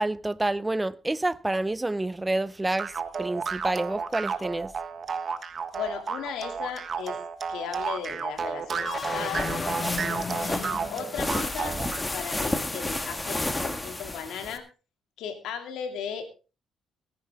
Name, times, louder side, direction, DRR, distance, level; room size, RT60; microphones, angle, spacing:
voice 1, 0.0-2.9 3.2-4.7, right 2 dB, 15° right, 0.6 m, -28 dB
sound 1, 2.8-12.1, right 5 dB, 45° right, 1.4 m, -32 dB
voice 2, 5.7-7.2 7.5-9.5 10.4-14.6 15.2-16.3, left 7 dB, 85° left, 2.5 m, -36 dB
sound 2, 8.7-11.7, left 4 dB, 35° left, 1.1 m, -35 dB
sound 3, 9.2-14.6, left 2 dB, 15° left, 1.7 m, -31 dB
19.0 x 10.5 x 3.5 m
cardioid pair, 90°, 0 cm